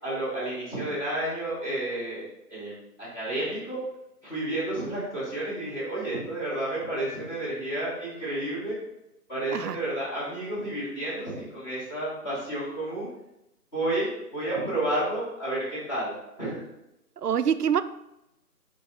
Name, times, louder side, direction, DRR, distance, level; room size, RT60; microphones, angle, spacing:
voice 1, 0.0-3.8 4.2-8.8 9.3-13.1 13.7-16.6, right 1 dB, 15° left, -10 dB, 1.9 m, -31 dB
voice 2, 17.2-17.8, right 8 dB, 75° right, 12 dB, 0.6 m, -25 dB
6.3 x 5.2 x 3.0 m, 0.88 s
figure-of-eight pair, 165°, 47 cm